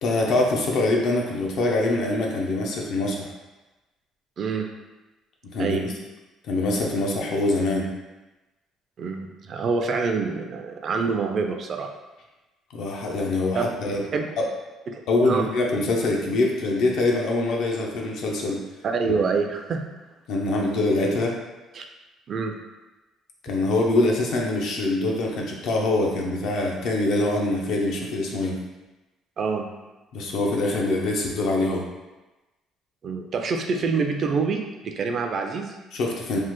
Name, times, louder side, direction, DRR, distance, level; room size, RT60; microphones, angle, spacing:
voice 1, 0.0-3.3 5.4-5.9 6.4-7.9 12.7-14.0 15.1-18.6 20.3-21.4 23.4-28.6 30.1-31.8 35.9-36.4, left 2 dB, 70° left, -1 dB, 0.6 m, -24 dB
voice 2, 4.4-4.7 5.6-5.8 9.0-11.9 13.5-13.6 14.1-14.3 14.9-15.4 18.8-19.9 21.7-21.9 22.3-22.6 29.4-29.7 33.0-35.8, right 5 dB, 45° right, 4 dB, 0.3 m, -26 dB
3.2 x 2.1 x 3.0 m, 1.1 s
cardioid pair, 115°, 0 cm